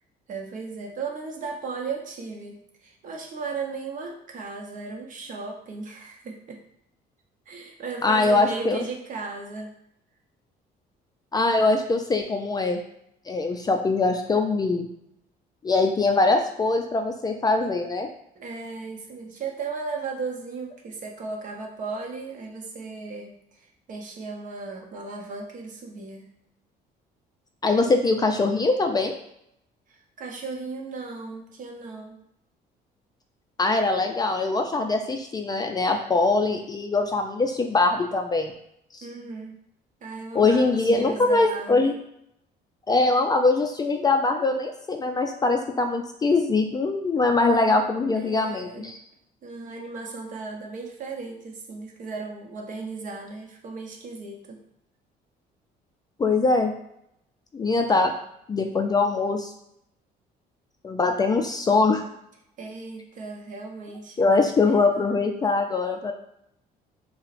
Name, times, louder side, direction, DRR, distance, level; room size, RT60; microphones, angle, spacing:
voice 1, 0.3-6.6 7.5-9.7 18.4-23.3 23.6-26.3 29.9-32.2 39.0-39.6 40.0-42.0 48.1-49.0 49.4-54.6 62.6-65.0, right 4 dB, 50° right, 1 dB, 0.8 m, -36 dB
voice 2, 8.0-8.8 11.3-12.8 13.3-14.9 15.6-18.1 27.6-29.1 33.6-38.5 38.9-39.1 40.3-41.9 42.9-49.0 56.2-56.7 57.5-58.1 58.5-59.5 60.8-62.0 64.2-66.1, left 3 dB, 25° left, 4 dB, 0.3 m, -22 dB
5.4 x 2.1 x 2.5 m, 0.76 s
cardioid pair, 110°, 17 cm